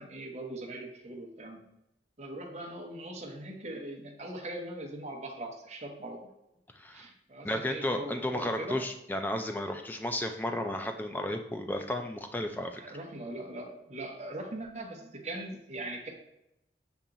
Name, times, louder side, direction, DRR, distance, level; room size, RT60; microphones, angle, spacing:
voice 1, 0.0-1.6 2.2-6.3 6.9-8.8 12.8-16.1, right 1 dB, 40° right, 1 dB, 0.8 m, -41 dB
voice 2, 6.7-7.1 7.4-12.8, left 1 dB, 10° left, 5 dB, 0.4 m, -33 dB
6.9 x 2.9 x 2.5 m, 0.87 s
head